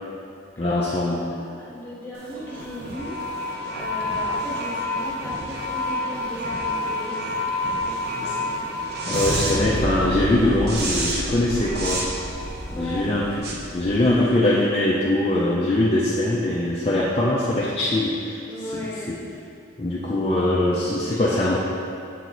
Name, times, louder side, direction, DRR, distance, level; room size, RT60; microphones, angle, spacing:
voice 1, 0.6-1.3 8.1-8.5 9.1-12.1 12.8-18.4 19.1-19.2 19.8-21.6, left 1 dB, 30° left, -5 dB, 0.5 m, -22 dB
voice 2, 1.1-3.4 3.7-7.4 7.8-8.5 12.7-13.1 18.4-19.2 21.0-21.6, equal, 10° left, -7 dB, 1.2 m, -37 dB
sound 1, 2.1-14.5, left 1 dB, 50° right, 0.8 m, -28 dB
7.5 x 4.6 x 4.0 m, 2.5 s
head